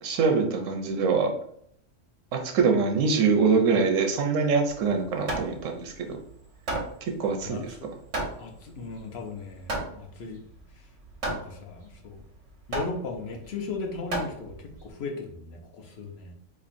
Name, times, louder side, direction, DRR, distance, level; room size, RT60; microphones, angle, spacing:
voice 1, 0.0-1.3 2.3-6.1 7.0-7.7, right 5 dB, 90° right, 4 dB, 1.1 m, -24 dB
Hammer, 4.7-14.9, right 1 dB, 70° right, 1.3 m, -35 dB
voice 2, 7.4-7.9 8.4-10.4 10.7-10.9 11.3-12.2 12.7-16.4, left 4 dB, 60° left, 3 dB, 0.9 m, -37 dB
4.2 x 2.8 x 2.5 m, 0.67 s
omnidirectional pair, 1.3 m